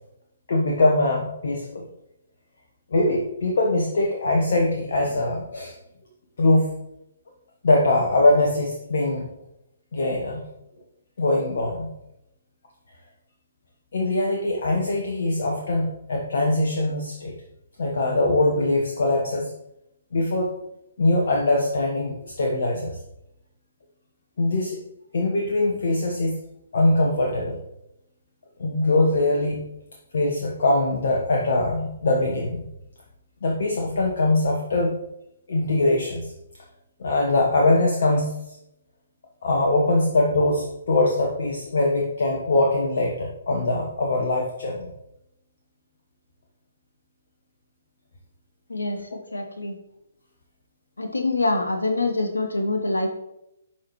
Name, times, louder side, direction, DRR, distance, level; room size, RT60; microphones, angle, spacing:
voice 1, 0.5-1.9 2.9-5.7 6.4-6.8 7.6-9.3 9.9-10.4 11.2-11.9 13.9-17.3 17.8-19.5 20.1-20.5 21.0-22.9 24.4-24.8 25.1-26.3 26.7-27.6 28.6-29.6 30.1-32.7 33.4-34.9 35.5-36.3 37.0-38.3 39.4-44.9, left 2 dB, 60° left, 0 dB, 1.0 m, -22 dB
voice 2, 48.7-49.8 51.0-53.2, left 2 dB, 80° left, 4 dB, 0.8 m, -25 dB
10.5 x 4.3 x 3.0 m, 0.84 s
figure-of-eight pair, 130°, 0 cm